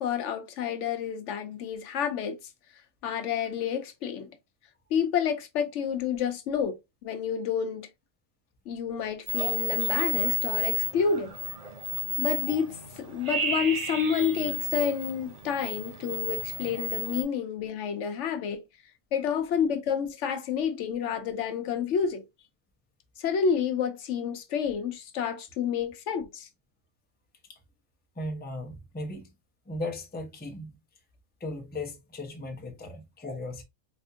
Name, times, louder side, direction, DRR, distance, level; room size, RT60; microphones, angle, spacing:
voice 1, 0.0-2.4 2.7-4.3 4.9-7.9 8.7-11.4 12.2-18.6 19.1-22.3 23.2-26.5, left 7 dB, 70° left, 0.9 m, -29 dB
sound 1, 9.3-17.2, left 2 dB, 40° right, 0.6 m, -32 dB
voice 2, 28.2-29.3 29.7-30.8 31.4-33.6, left 1 dB, 10° left, 0.5 m, -37 dB
4.2 x 2.5 x 2.5 m
omnidirectional pair, 1.3 m